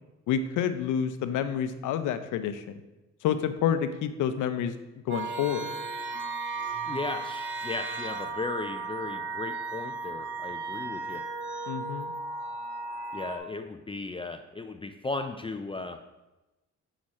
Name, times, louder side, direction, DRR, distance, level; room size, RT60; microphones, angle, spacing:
voice 1, 0.3-2.8 3.2-4.8 5.1-5.6 11.7-12.1, left 8 dB, 85° left, 10 dB, 0.7 m, -28 dB
sound 1, 5.1-13.4, right 3 dB, 40° right, 1.0 m, -35 dB
voice 2, 6.9-11.2 13.1-16.0, left 3 dB, 20° left, 7 dB, 0.4 m, -36 dB
7.6 x 5.0 x 4.2 m, 1.0 s
cardioid pair, 90°, 30 cm